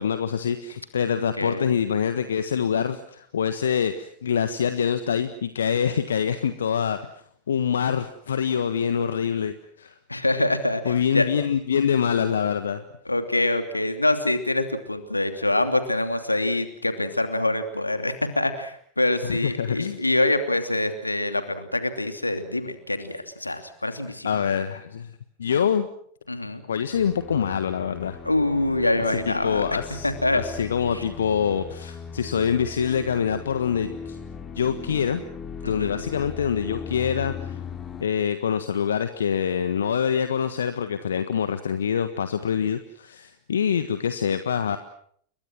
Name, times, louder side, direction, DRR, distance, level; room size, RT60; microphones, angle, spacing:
voice 1, 0.0-7.0 7.5-9.9 10.8-12.8 19.2-20.0 24.2-25.1 25.4-25.9 26.6-28.2 29.1-34.2 34.5-35.2 35.6-37.6 38.0-44.8, left 7 dB, 65° left, 10 dB, 1.4 m, -25 dB
voice 2, 1.4-1.7 10.1-11.3 13.1-24.5 26.3-26.6 28.2-29.8 30.0-30.4 30.9-31.0 35.6-36.1, left 2 dB, 85° left, 8 dB, 2.9 m, -25 dB
sound 1, 26.9-38.0, left 6 dB, 25° left, 2.8 m, -38 dB
30.0 x 23.0 x 6.2 m, 0.64 s
figure-of-eight pair, 90°, 0 cm